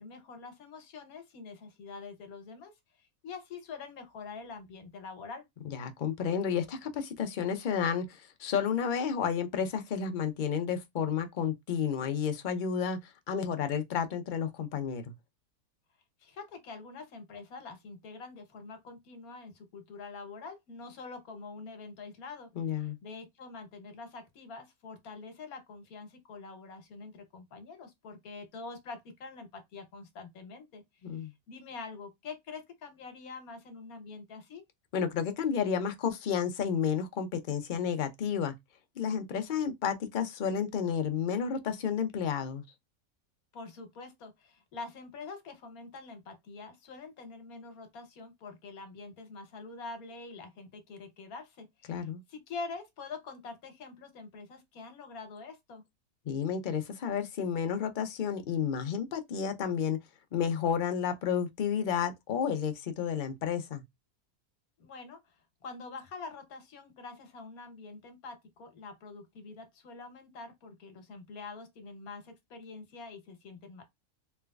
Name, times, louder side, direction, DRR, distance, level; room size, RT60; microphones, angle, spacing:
voice 1, 0.0-5.5 16.2-30.8 31.1-34.6 43.5-55.8 64.8-73.8, left 4 dB, 80° left, 1.4 m, -45 dB
voice 2, 5.7-15.0 22.6-23.0 31.0-31.3 34.9-38.5 39.0-42.6 51.9-52.2 56.3-60.0 60.3-63.8, left 7 dB, 60° left, 0.5 m, -31 dB
3.3 x 3.0 x 2.3 m
omnidirectional pair, 1.5 m